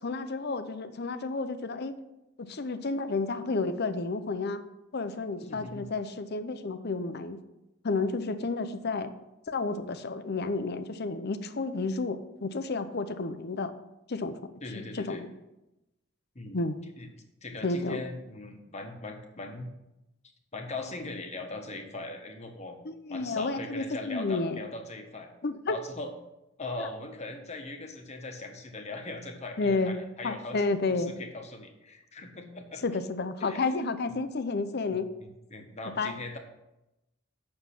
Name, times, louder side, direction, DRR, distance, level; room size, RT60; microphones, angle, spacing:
voice 1, 0.0-2.0 2.4-4.6 4.9-7.4 7.8-9.1 9.5-13.7 14.1-14.4 14.7-15.3 16.5-16.8 17.6-18.0 22.8-24.6 25.4-25.7 26.8-26.9 29.6-30.0 30.2-31.1 32.8-35.1 36.0-36.1, left 3 dB, 50° left, 11 dB, 0.7 m, -31 dB
voice 2, 5.4-5.9 14.6-15.2 16.3-16.6 17.0-17.1 17.4-19.7 20.5-22.8 23.1-25.3 25.7-26.1 26.6-32.8 33.4-33.7 34.9-36.4, left 2 dB, 30° left, 4 dB, 1.2 m, -40 dB
8.3 x 6.4 x 5.9 m, 0.94 s
head